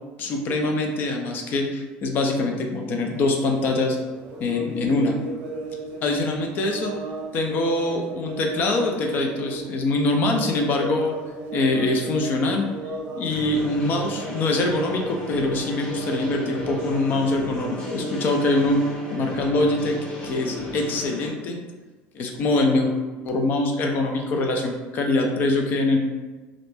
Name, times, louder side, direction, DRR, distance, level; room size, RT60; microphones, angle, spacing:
voice 1, 0.2-4.0 4.4-5.1 6.0-6.9 7.3-11.1 11.5-12.7 13.1-21.6 22.1-22.9 23.2-26.0, left 2 dB, 50° left, 2 dB, 0.5 m, -24 dB
sound 1, 3.0-18.2, right 2 dB, 70° right, 0.6 m, -35 dB
sound 2, 13.3-21.3, left 2 dB, 30° left, 0.9 m, -35 dB
2.5 x 2.1 x 3.2 m, 1.3 s
supercardioid pair, 115°, 4 cm